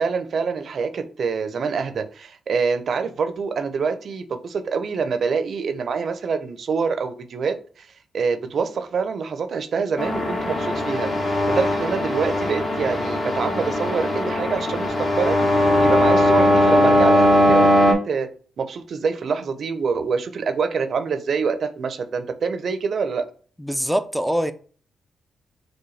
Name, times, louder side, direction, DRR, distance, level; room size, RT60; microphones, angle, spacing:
voice 1, 0.0-7.9 8.1-15.4 15.8-18.3 18.6-23.2, right 5 dB, 60° right, 0.5 m, -26 dB
sound 1, 10.0-17.9, left 1 dB, 40° left, 1.1 m, -19 dB
voice 2, 23.6-24.5, equal, ahead, 0.4 m, -23 dB
4.7 x 2.2 x 3.1 m
cardioid pair, 65°, 0 cm